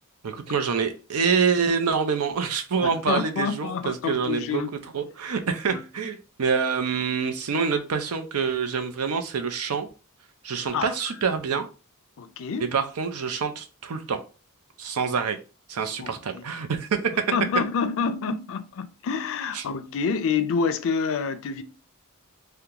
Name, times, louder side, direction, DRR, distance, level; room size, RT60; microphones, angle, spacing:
voice 1, 0.2-4.6 4.9-9.9 10.4-11.7 12.6-14.2 14.8-15.4 15.7-17.0 19.5-19.6, right 6 dB, 85° right, 0.6 m, -26 dB
voice 2, 2.8-4.7 5.7-5.8 10.7-10.9 12.2-12.7 16.0-16.4 17.3-21.6, left 5 dB, 65° left, 0.4 m, -28 dB
2.8 x 2.2 x 3.7 m
head